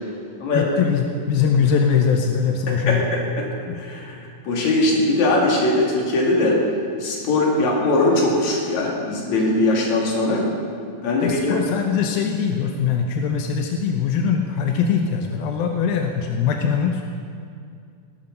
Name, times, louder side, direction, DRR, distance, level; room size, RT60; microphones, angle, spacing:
voice 1, 0.5-3.0 3.7-3.8 11.2-17.0, left 6 dB, 85° left, 3 dB, 2.7 m, -22 dB
voice 2, 2.9-3.5 3.8-4.2 4.5-6.7 7.0-10.5 11.0-11.6, left 2 dB, 55° left, -2 dB, 3.6 m, -20 dB
19.5 x 12.0 x 5.4 m, 2.3 s
omnidirectional pair, 4.1 m